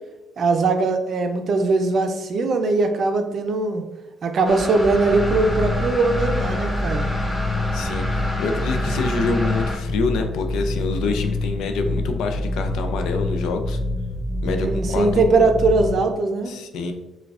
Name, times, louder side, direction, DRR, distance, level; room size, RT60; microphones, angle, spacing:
voice 1, 0.4-3.8 4.2-7.1 14.4-16.5, right 3 dB, 55° right, 6 dB, 0.5 m, -20 dB
sound 1, 4.4-9.8, equal, 10° left, 0.9 m, -29 dB
sound 2, 5.1-15.9, left 2 dB, 50° left, 0.7 m, -26 dB
voice 2, 7.7-13.8 14.4-15.2 16.5-16.9, left 4 dB, 85° left, 6 dB, 0.4 m, -26 dB
4.6 x 2.2 x 2.4 m, 0.98 s
cardioid pair, 90°, 0 cm